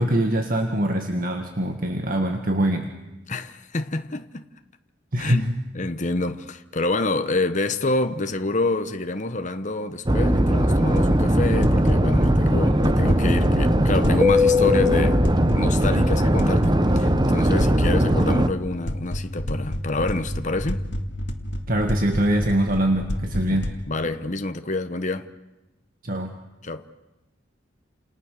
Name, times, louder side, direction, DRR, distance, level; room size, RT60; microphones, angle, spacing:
voice 1, 0.0-2.9 5.1-5.6 21.7-23.7 26.0-26.3, right 1 dB, 50° right, 1.9 m, -23 dB
voice 2, 3.3-4.4 5.2-5.5 5.7-20.8 23.5-23.6 23.9-25.3 26.6-26.9, left 2 dB, 40° left, 1.1 m, -27 dB
sound 1, 10.1-18.5, equal, 25° right, 1.1 m, -19 dB
sound 2, 10.9-23.8, equal, 65° left, 2.2 m, -30 dB
29.5 x 28.5 x 6.8 m
head